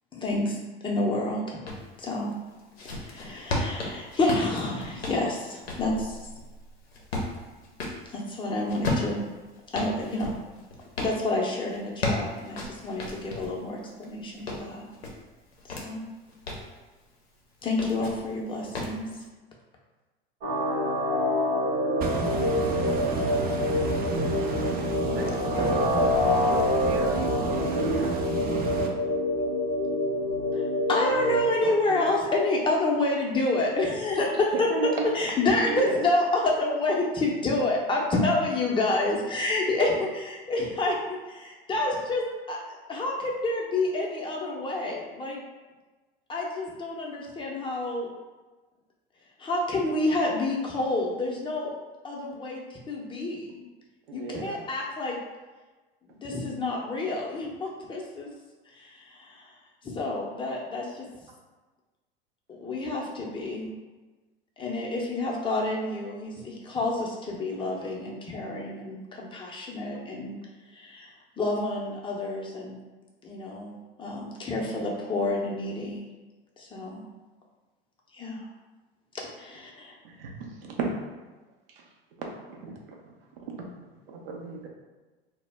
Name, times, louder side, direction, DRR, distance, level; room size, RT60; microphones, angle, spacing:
voice 1, 0.1-0.6 0.8-1.6 2.0-2.3 2.8-6.2 8.1-9.2 9.7-10.4 11.0-14.9 15.7-16.0 17.6-19.1 30.5-30.6 30.9-41.0 41.3-42.6 42.9-45.4 46.3-48.1 49.4-51.7 52.0-53.6 54.1-55.2 56.1-58.3 58.7-59.5 59.8-61.1 62.5-63.7 64.6-70.4 70.7-72.8 73.2-76.1 76.6-77.0 78.1-78.4 79.1-80.0, left 2 dB, 15° left, -2 dB, 0.6 m, -29 dB
sound 1, 1.7-1.9 2.4-8.0 8.7-11.2 11.7-13.6 14.0-15.9 16.3-16.7 17.6-18.3 18.7-19.0, left 2 dB, 85° left, 0.6 m, -33 dB
sound 2, 20.4-31.5, left 1 dB, 50° right, 1.0 m, -26 dB
voice 2, 22.0-28.9, right 4 dB, 30° right, 1 dB, 0.5 m, -32 dB
voice 3, 25.1-25.6 25.9-26.1 26.5-28.2 31.6-32.0 34.7-35.2 35.7-35.9 54.1-54.6 80.0-80.3 80.6-80.9 82.5-83.0 83.4-83.7 84.1-84.7, right 5 dB, 75° right, 0 dB, 0.6 m, -34 dB
2.1 x 2.0 x 3.3 m, 1.2 s
hypercardioid pair, 80°, 30 cm